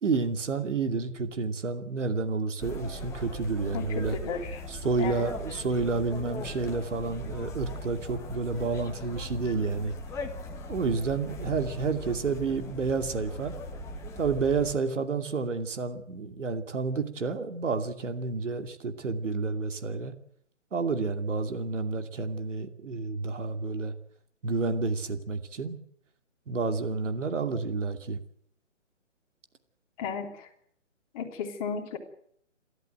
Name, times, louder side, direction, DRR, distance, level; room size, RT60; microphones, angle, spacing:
voice 1, 0.0-4.2 4.7-9.9 10.7-13.5 14.2-20.1 20.7-23.9 24.4-25.8 26.5-28.2, right 4 dB, 70° right, 7 dB, 2.7 m, -30 dB
sound 1, 2.6-14.7, left 1 dB, 5° left, 1.5 m, -39 dB
voice 2, 3.7-4.6 5.0-5.3 30.0-30.5 31.1-32.0, left 6 dB, 25° left, 1 dB, 3.5 m, -34 dB
29.0 x 13.5 x 7.9 m, 0.65 s
hypercardioid pair, 155°, 38 cm